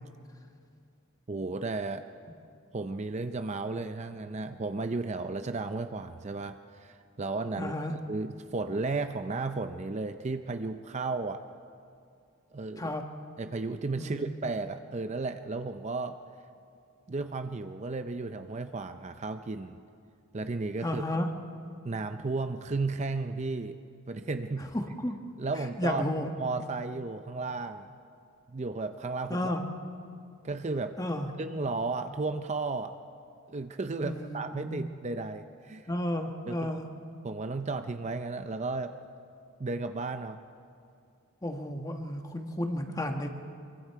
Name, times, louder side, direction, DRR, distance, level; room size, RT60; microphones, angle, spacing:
voice 1, 1.3-2.0 2.7-11.4 12.5-12.9 13.4-16.2 17.1-19.8 20.3-21.0 21.8-23.8 24.1-24.7 25.4-26.0 26.4-27.9 28.5-29.5 30.4-31.0 31.4-32.9 33.5-35.9 36.5-36.7 37.2-38.9 39.6-40.4, right 3 dB, 30° right, 8 dB, 0.5 m, -34 dB
voice 2, 7.6-7.9 12.8-13.0 14.0-14.3 20.8-21.3 24.7-25.2 25.8-26.3 29.3-29.6 31.0-31.3 34.0-34.9 35.9-36.9 41.4-43.3, left 1 dB, 15° left, 4 dB, 1.2 m, -32 dB
25.0 x 23.5 x 4.6 m, 2.4 s
head